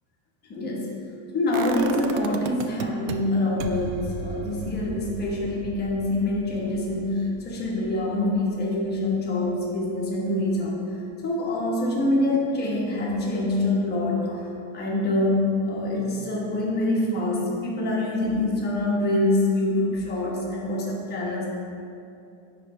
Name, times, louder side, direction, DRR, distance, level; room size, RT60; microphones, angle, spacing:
voice 1, 0.5-0.9 1.3-10.8 11.2-14.4 14.7-21.5, left 2 dB, 25° left, -3 dB, 1.1 m, -25 dB
sound 1, 1.5-3.1 3.6-9.4 9.8-9.9, right 6 dB, 55° right, 0.5 m, -36 dB
9.2 x 3.3 x 4.2 m, 2.6 s
supercardioid pair, 150°, 40 cm